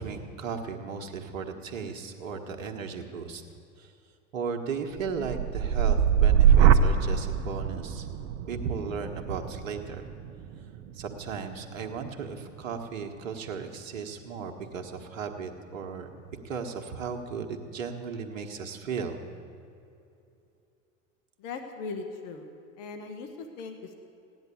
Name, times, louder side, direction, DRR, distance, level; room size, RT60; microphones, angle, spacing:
voice 1, 0.0-3.4 3.8-3.9 4.3-8.1 8.4-10.1 10.9-16.1 16.4-19.2, right 5 dB, 80° right, 5 dB, 1.6 m, -36 dB
sound 1, 5.0-13.0 13.5-13.9, right 8 dB, 65° right, 1.0 m, -25 dB
voice 2, 21.4-22.5 22.8-23.9, left 4 dB, 60° left, 5 dB, 1.6 m, -39 dB
16.5 x 10.5 x 8.5 m, 2.7 s
hypercardioid pair, 85°, 39 cm